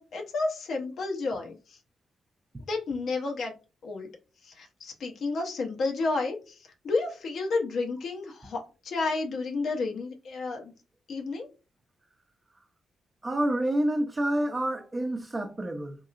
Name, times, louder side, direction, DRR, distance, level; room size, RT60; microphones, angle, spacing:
voice 1, 0.0-1.6 2.7-3.5 3.8-4.1 4.4-6.6 6.8-10.7 11.1-11.5, left 3 dB, 70° left, 0.8 m, -31 dB
voice 2, 13.2-16.0, right 1 dB, 30° right, 0.7 m, -28 dB
2.9 x 2.7 x 2.4 m
hypercardioid pair, 45°, 0 cm